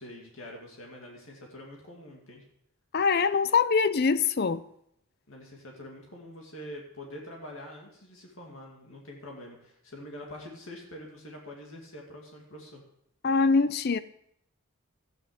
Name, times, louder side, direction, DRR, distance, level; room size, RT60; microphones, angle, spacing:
voice 1, 0.0-2.4 5.3-12.8, left 1 dB, 70° left, 2.3 m, -45 dB
voice 2, 2.9-4.6 13.2-14.0, left 5 dB, 45° left, 0.5 m, -23 dB
12.5 x 9.4 x 5.1 m
head